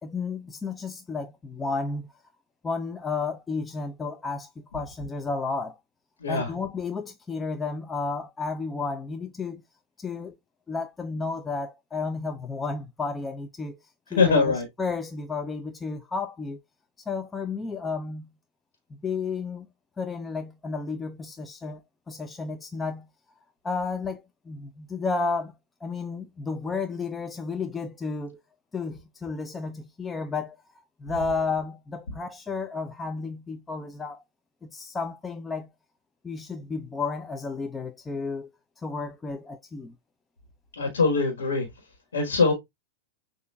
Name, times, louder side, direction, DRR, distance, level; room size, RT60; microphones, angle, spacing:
voice 1, 0.0-2.1 2.6-5.8 6.3-9.6 10.0-10.3 10.7-13.8 14.1-16.6 17.0-18.3 18.9-19.7 20.0-23.1 23.6-28.4 28.7-30.6 31.0-34.2 34.6-35.7 36.2-38.5 38.8-40.0, left 4 dB, 15° left, 0.5 m, -32 dB
voice 2, 14.1-14.7 40.8-41.7 42.1-42.5, left 4 dB, 85° left, 1.4 m, -22 dB
6.6 x 2.5 x 2.3 m
hypercardioid pair, 110°, 0 cm